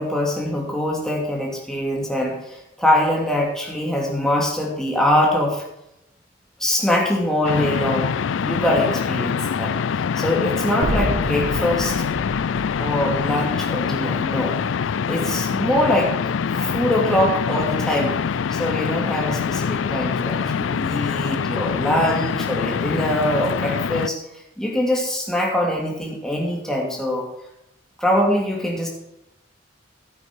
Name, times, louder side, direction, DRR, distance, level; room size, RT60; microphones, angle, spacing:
voice 1, 0.0-5.6 6.6-8.1 8.4-9.7 10.1-12.0 12.8-14.6 15.1-16.1 16.5-27.3 28.0-28.9, left 1 dB, 5° left, -2 dB, 2.8 m, -23 dB
sound 1, 7.4-24.1, left 6 dB, 80° left, 0.4 m, -24 dB
sound 2, 10.8-15.0, right 1 dB, 90° right, 1.7 m, -31 dB
12.0 x 9.3 x 4.7 m, 0.85 s
head